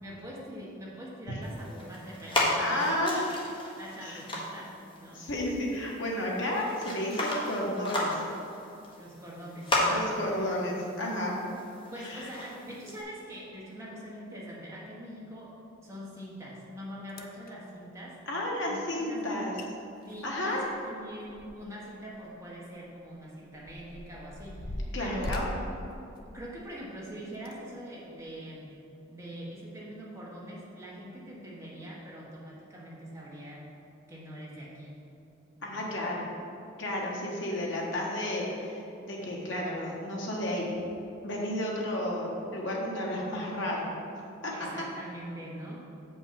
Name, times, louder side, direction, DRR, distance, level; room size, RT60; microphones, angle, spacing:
voice 1, 0.0-3.0 3.8-5.2 9.0-10.0 10.4-10.8 11.9-15.5 15.8-18.2 18.7-19.6 20.1-25.3 26.2-28.7 29.1-33.7 34.1-35.0 35.6-35.8 44.5-45.8, equal, 15° right, -6 dB, 1.4 m, -43 dB
sound 1, 1.4-13.0, left 1 dB, 25° left, 1.2 m, -35 dB
voice 2, 2.6-3.5 4.0-4.2 5.1-8.2 9.9-11.3 12.0-12.3 18.3-19.5 20.2-20.6 24.9-25.5 35.6-36.3 36.8-40.7 41.2-43.9 44.4-44.5, left 1 dB, 70° left, -3 dB, 1.5 m, -32 dB
sound 2, 16.6-16.7 17.1-17.5 19.2-19.3 19.6-19.7 20.0-21.8 22.2-22.3 23.0-26.8 27.3-27.6 28.2-28.3, left 1 dB, 45° left, 0.6 m, -40 dB
7.7 x 5.4 x 5.8 m, 2.7 s
head